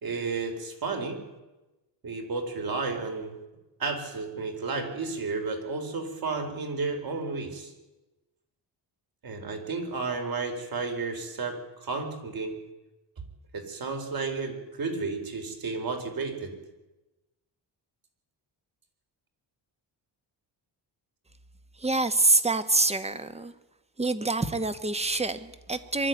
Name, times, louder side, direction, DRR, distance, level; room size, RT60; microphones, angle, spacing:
voice 1, 0.0-1.2 2.0-3.4 3.8-7.7 9.2-12.6 13.5-16.5, right 4 dB, 50° right, 5 dB, 4.3 m, -32 dB
voice 2, 21.8-23.5 24.0-26.1, right 3 dB, 15° right, 12 dB, 1.2 m, -26 dB
23.5 x 13.0 x 9.3 m, 1.1 s
cardioid pair, 125°, 44 cm